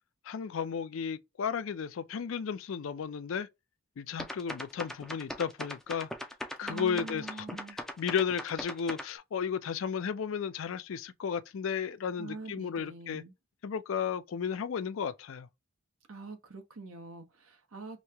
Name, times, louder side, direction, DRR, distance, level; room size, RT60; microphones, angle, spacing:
voice 1, 0.3-3.5 4.0-6.1 6.6-13.2 13.6-15.5, left 7 dB, 70° left, 0.4 m, -34 dB
sound 1, 4.2-9.1, left 1 dB, ahead, 0.4 m, -39 dB
voice 2, 6.6-7.8 12.2-13.3 16.1-18.0, right 3 dB, 80° right, 0.9 m, -44 dB
3.1 x 2.8 x 3.3 m
head